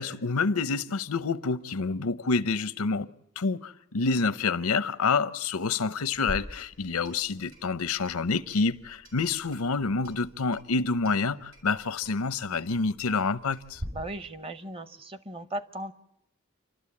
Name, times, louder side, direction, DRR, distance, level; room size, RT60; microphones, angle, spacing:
voice 1, 0.0-3.1 3.4-13.8, left 4 dB, 90° left, 0.7 m, -28 dB
Clock, 6.1-13.9, equal, 90° right, 6.2 m, -46 dB
voice 2, 13.9-15.9, right 1 dB, 25° right, 0.7 m, -37 dB
29.0 x 12.5 x 8.5 m
head